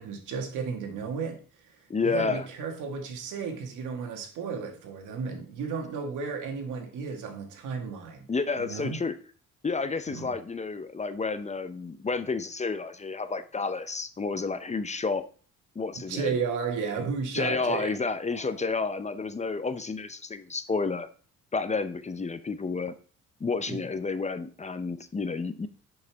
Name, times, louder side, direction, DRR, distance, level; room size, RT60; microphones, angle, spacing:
voice 1, 0.0-1.4 2.0-8.3 8.6-9.0 10.1-10.3 16.1-17.9 18.3-18.5 23.7-23.8, right 5 dB, 85° right, 4 dB, 1.9 m, -33 dB
voice 2, 1.9-2.5 8.3-9.2 9.6-15.2 15.8-16.3 17.3-21.1 21.5-22.9 23.4-25.7, left 4 dB, 25° left, 11 dB, 0.7 m, -30 dB
10.5 x 5.6 x 3.5 m, 0.41 s
cardioid pair, 90°, 30 cm